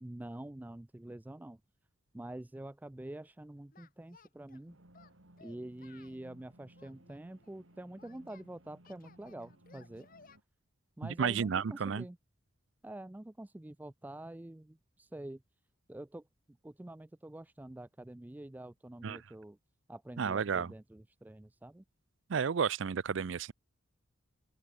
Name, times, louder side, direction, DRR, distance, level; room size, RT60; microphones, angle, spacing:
voice 1, 0.0-1.6 2.1-4.8 5.4-10.1 11.0-12.2 12.8-15.4 15.9-19.6 19.9-21.8, right 1 dB, 10° right, 0.3 m, -46 dB
Singing, 3.7-4.6 4.9-6.2 6.8-8.5 8.8-10.4, left 5 dB, 45° left, 1.5 m, -61 dB
sound 1, 4.7-10.4, right 1 dB, 90° right, 4.5 m, -61 dB
voice 2, 11.2-12.0 19.0-19.2 20.2-20.7 22.3-23.5, right 6 dB, 70° right, 0.5 m, -32 dB
open air
head